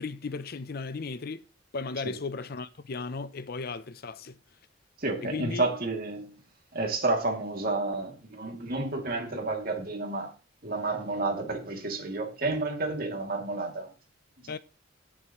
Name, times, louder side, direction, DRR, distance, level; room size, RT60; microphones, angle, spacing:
voice 1, 0.0-1.4 1.7-4.4 5.2-5.6 14.5-14.6, left 4 dB, 50° left, 0.6 m, -35 dB
voice 2, 5.0-6.3 6.7-10.3 10.6-13.9 14.4-14.5, right 2 dB, 50° right, 2.6 m, -30 dB
16.5 x 7.4 x 3.1 m
head